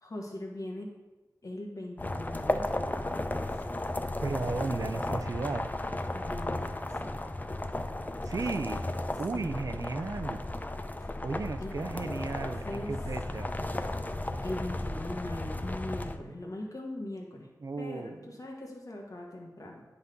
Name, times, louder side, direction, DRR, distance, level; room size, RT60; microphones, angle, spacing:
voice 1, 0.0-0.9 1.4-3.4 6.1-7.2 9.3-9.5 11.0-11.2 11.6-12.3 12.6-12.9 14.4-17.5 17.8-19.8, left 1 dB, 55° left, 0 dB, 1.7 m, -40 dB
sound 1, 2.0-16.2, left 1 dB, 25° left, 0.5 m, -34 dB
voice 2, 4.2-5.7 8.2-8.8 9.2-10.4 11.2-13.5 17.6-18.2, right 3 dB, 55° right, 10 dB, 0.5 m, -34 dB
9.5 x 4.1 x 5.2 m, 1.1 s
wide cardioid pair, 65°, 7 cm